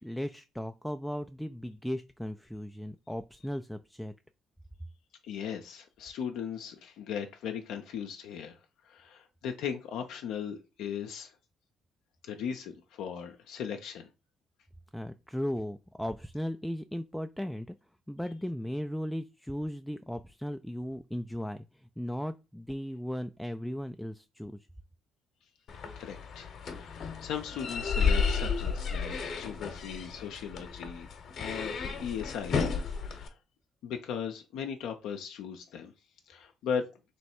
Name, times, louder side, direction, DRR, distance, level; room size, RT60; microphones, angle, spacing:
voice 1, 0.0-4.1 14.9-17.7 18.1-24.7, equal, ahead, 0.3 m, -36 dB
voice 2, 5.2-11.3 12.2-14.1 26.0-31.1 31.4-33.4 33.8-35.9 36.3-36.9, left 7 dB, 75° left, 0.5 m, -38 dB
sound 1, 25.7-33.3, left 5 dB, 60° left, 0.9 m, -32 dB
3.1 x 3.1 x 4.4 m
supercardioid pair, 60°, 0 cm